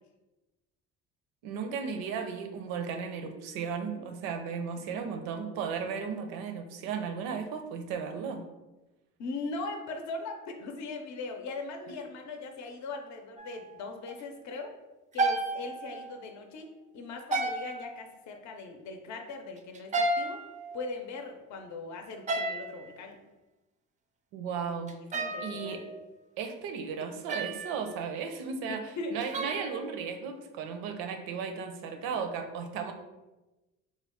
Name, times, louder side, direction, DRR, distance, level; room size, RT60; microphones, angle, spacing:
voice 1, 1.4-8.4 11.9-12.0 24.3-24.9 25.4-25.8 26.4-32.9, right 6 dB, 90° right, 6 dB, 0.6 m, -35 dB
voice 2, 9.2-14.7 15.1-20.4 20.7-23.2 25.1-25.8 28.7-29.2, left 3 dB, 55° left, 4 dB, 0.6 m, -39 dB
sound 1, 13.4-13.8 14.1-14.2 15.1-16.2 17.3-18.2 19.7-21.2 22.3-22.9 24.9-26.1 27.3-28.0 29.2-30.5, right 2 dB, 25° right, 0.3 m, -33 dB
3.5 x 2.2 x 3.5 m, 1.1 s
supercardioid pair, 80°, 34 cm